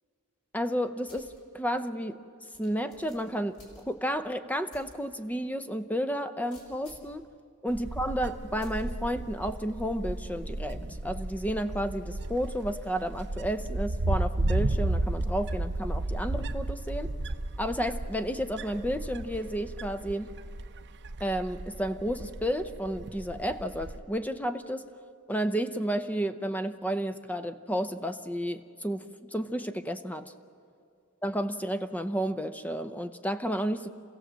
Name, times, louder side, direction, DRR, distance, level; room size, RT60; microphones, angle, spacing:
voice 1, 0.5-2.2 2.6-3.6 3.9-7.2 7.6-17.1 17.6-20.3 21.2-24.8 25.3-30.3 31.2-33.9, equal, 5° left, 10 dB, 0.7 m, -32 dB
sound 1, 1.1-1.4 1.8-1.9 2.5-4.2 4.7-4.9 5.4-5.5 6.5-7.2 8.6-8.9, left 1 dB, 80° left, 4.5 m, -54 dB
Wind, 7.7-24.0, right 2 dB, 50° right, 0.8 m, -33 dB
28.0 x 16.0 x 7.6 m, 2.3 s
head